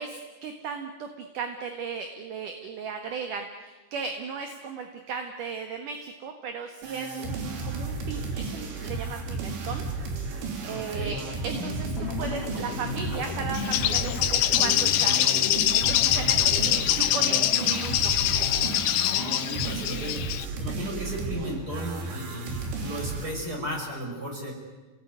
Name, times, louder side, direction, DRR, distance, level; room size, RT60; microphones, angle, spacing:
voice 1, 0.0-9.9 10.6-18.3 19.7-20.1, right 5 dB, 60° right, 5 dB, 2.7 m, -36 dB
sound 1, 6.8-23.4, right 3 dB, 80° right, 5.2 m, -34 dB
voice 2, 10.7-11.2 16.1-16.9 19.4-24.5, equal, 20° right, 1 dB, 5.9 m, -36 dB
sound 2, 11.6-19.7, left 6 dB, 50° left, 3.4 m, -36 dB
Bird, 13.5-20.5, left 12 dB, 80° left, 3.1 m, -24 dB
29.0 x 18.5 x 9.5 m, 1.3 s
omnidirectional pair, 5.0 m